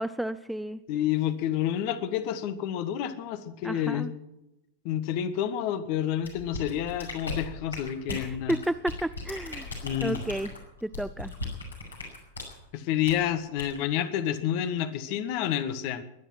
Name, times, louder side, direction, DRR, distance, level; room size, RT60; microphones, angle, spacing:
voice 1, 0.0-0.8 3.6-4.1 8.1-9.7 10.0-10.5 10.8-11.3, right 1 dB, 5° right, 13 dB, 0.5 m, -32 dB
voice 2, 0.9-4.1 4.8-8.5 9.8-10.2 12.7-16.0, left 10 dB, 45° left, 11 dB, 1.5 m, -29 dB
sound 1, 6.2-12.6 13.0-13.2 13.6-13.8, left 3 dB, 80° left, 5.5 m, -37 dB
22.0 x 10.5 x 5.9 m, 0.93 s
figure-of-eight pair, 90°, 0 cm